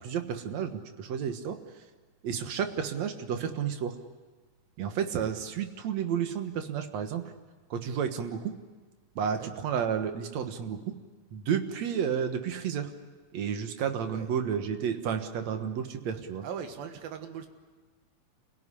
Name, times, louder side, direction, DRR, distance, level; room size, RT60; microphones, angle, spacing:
voice 1, 0.0-1.6 2.2-3.9 4.8-7.2 7.7-8.5 9.2-10.8 11.3-12.9 13.3-16.4, right 8 dB, 60° right, 6 dB, 2.3 m, -31 dB
voice 2, 16.4-17.5, right 7 dB, 85° right, 7 dB, 3.3 m, -39 dB
27.5 x 17.0 x 9.9 m, 1.4 s
omnidirectional pair, 4.1 m